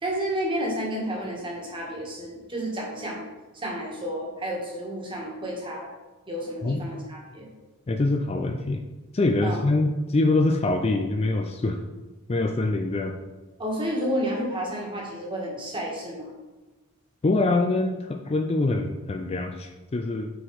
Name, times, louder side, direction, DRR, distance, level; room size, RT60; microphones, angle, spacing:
voice 1, 0.0-3.2 3.5-5.9 6.3-7.5 9.4-9.6 13.6-16.4, equal, 25° right, -2 dB, 1.6 m, -31 dB
voice 2, 7.9-8.8 9.1-11.8 12.3-13.1 17.2-20.3, left 2 dB, 30° left, 5 dB, 0.4 m, -24 dB
6.1 x 5.0 x 4.8 m, 1.2 s
head